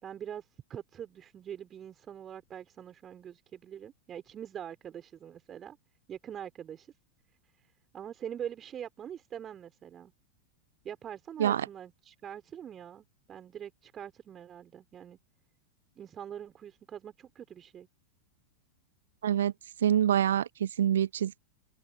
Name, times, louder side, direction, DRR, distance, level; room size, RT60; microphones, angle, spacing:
voice 1, 0.0-5.8 6.1-6.9 7.9-10.1 10.8-15.2 16.0-17.9, right 9 dB, 25° right, 4.2 m, -43 dB
voice 2, 19.2-19.5 19.8-21.4, right 10 dB, 65° right, 0.5 m, -26 dB
figure-of-eight pair, 90°, 0 cm